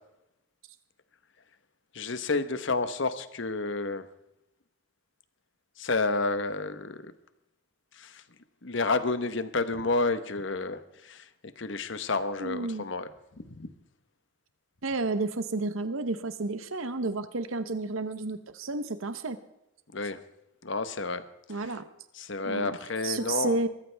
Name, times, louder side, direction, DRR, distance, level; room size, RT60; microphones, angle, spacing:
voice 1, 1.9-4.1 5.8-7.1 8.0-8.2 8.6-11.3 11.6-13.1 13.4-13.7 19.9-20.2 20.6-21.2 22.1-23.6, left 3 dB, 60° left, 11 dB, 1.1 m, -30 dB
voice 2, 12.4-12.9 14.8-19.4 21.5-21.9 22.5-22.8 23.0-23.7, right 3 dB, 80° right, 11 dB, 0.9 m, -31 dB
22.0 x 14.5 x 3.4 m, 0.88 s
head